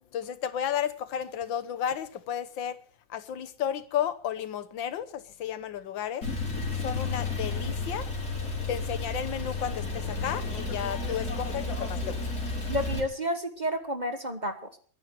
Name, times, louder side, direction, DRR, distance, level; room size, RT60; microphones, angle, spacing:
voice 1, 0.1-2.8 3.1-6.3 6.7-8.1 8.7-12.2, left 9 dB, 90° left, 1.7 m, -33 dB
Male speech man speaking / Car / Idling, 6.2-13.0, left 3 dB, 55° left, 3.6 m, -32 dB
voice 2, 12.7-14.8, equal, 25° right, 1.2 m, -31 dB
22.5 x 10.5 x 4.6 m
omnidirectional pair, 2.0 m